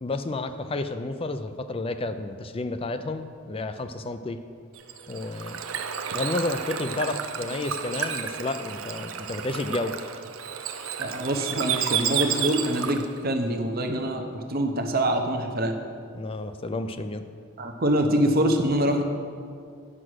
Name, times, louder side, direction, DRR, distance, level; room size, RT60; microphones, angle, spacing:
voice 1, 0.0-4.4 5.1-5.6 6.1-10.0 16.1-17.2, left 2 dB, 25° left, 10 dB, 0.4 m, -31 dB
Bird / Water, 4.8-13.2, right 8 dB, 75° right, 0.6 m, -31 dB
voice 2, 11.0-15.8 17.6-19.0, right 1 dB, 45° right, 4 dB, 0.9 m, -25 dB
9.9 x 6.1 x 6.3 m, 2.2 s
head